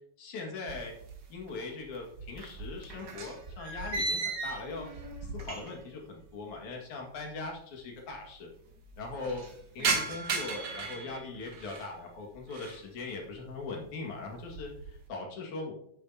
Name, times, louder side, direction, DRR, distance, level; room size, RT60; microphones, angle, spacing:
voice 1, 0.2-1.0 1.3-4.9 5.3-8.5 9.0-9.4 9.8-15.7, left 3 dB, 75° left, 0 dB, 3.4 m, -40 dB
sound 1, 0.7-1.6 1.8-5.9 6.2-6.3 7.2-7.3 7.4-7.5 7.8-8.3 8.7-11.9 12.4-12.9 13.3-13.7 14.1-15.0, right 3 dB, 50° right, 1.5 m, -36 dB
10.0 x 9.0 x 2.8 m, 0.68 s
omnidirectional pair, 3.4 m